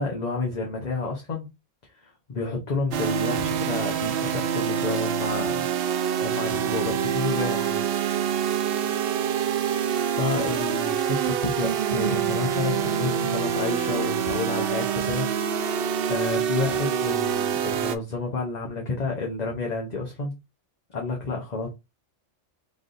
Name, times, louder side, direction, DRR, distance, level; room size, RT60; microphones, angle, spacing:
voice 1, 0.0-1.5 1.8-5.7 6.2-7.9 8.5-8.6 10.2-15.3 16.1-20.3 20.9-21.7, left 3 dB, 40° left, 0.9 m, -30 dB
sound 1, 2.9-18.0, right 8 dB, 60° right, 0.7 m, -26 dB
4.1 x 3.4 x 2.6 m
omnidirectional pair, 1.3 m